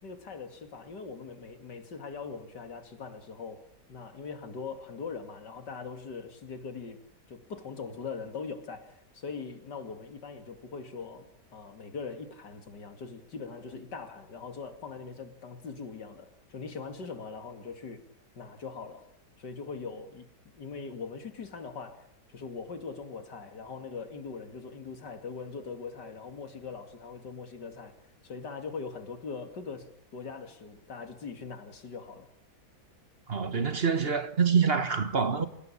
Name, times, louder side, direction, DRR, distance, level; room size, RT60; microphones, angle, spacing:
voice 1, 0.0-3.6 3.9-7.0 7.3-18.0 18.4-19.1 19.4-22.0 22.3-28.0 28.2-32.3, left 5 dB, 85° left, 3.0 m, -41 dB
voice 2, 33.3-35.5, right 6 dB, 40° right, 1.5 m, -26 dB
28.5 x 17.0 x 8.6 m
omnidirectional pair, 1.8 m